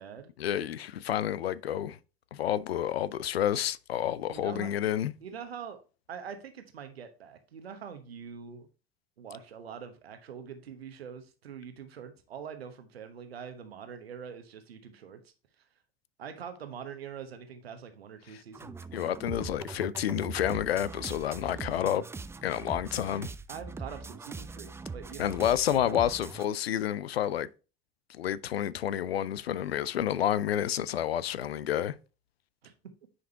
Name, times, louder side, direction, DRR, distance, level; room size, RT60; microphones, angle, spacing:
voice 1, 0.4-2.0 2.3-5.1 18.9-22.0 22.4-23.3 25.2-27.5 28.1-32.0, left 10 dB, 75° left, 0.5 m, -29 dB
voice 2, 4.3-4.7 5.2-5.8 6.1-8.7 9.2-15.2 16.2-18.7 23.5-25.3 25.7-26.0 32.6-32.7, right 7 dB, 75° right, 1.1 m, -44 dB
sound 1, 18.5-26.4, right 4 dB, 10° right, 0.4 m, -41 dB
9.7 x 5.2 x 2.8 m
figure-of-eight pair, 60°, 31 cm